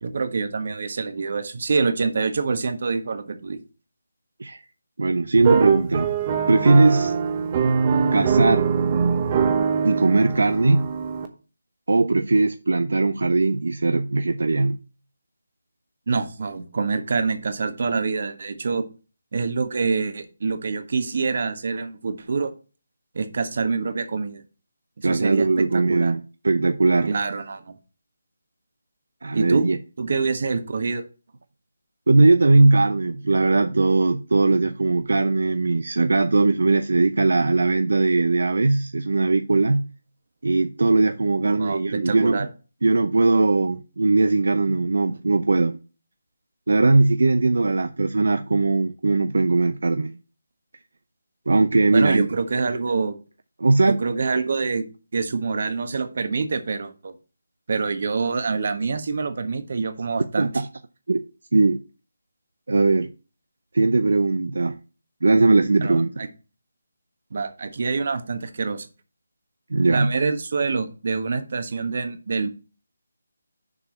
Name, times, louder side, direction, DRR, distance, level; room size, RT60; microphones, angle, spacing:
voice 1, 0.0-3.6 16.1-18.8 19.3-22.5 23.1-24.4 25.0-26.1 27.1-27.6 29.3-29.7 30.0-31.0 41.4-42.5 51.9-53.2 54.0-54.8 55.1-57.1 57.7-60.5 65.8-66.3 67.3-68.9 69.9-72.5, right 4 dB, 50° right, 1.3 m, -26 dB
voice 2, 5.0-6.1 6.5-7.1 8.1-8.7 9.8-10.9 11.9-14.8 25.0-27.1 29.2-29.8 32.1-39.9 40.4-42.5 42.8-45.8 46.7-50.2 51.5-52.3 53.6-54.0 60.4-60.7 61.1-61.2 61.5-61.8 62.7-63.1 63.7-64.8 65.2-66.3 69.7-70.2, right 3 dB, 75° right, 0.6 m, -19 dB
sound 1, 5.4-11.3, right 6 dB, 25° right, 0.9 m, -22 dB
6.7 x 4.8 x 5.8 m
figure-of-eight pair, 165°, 0 cm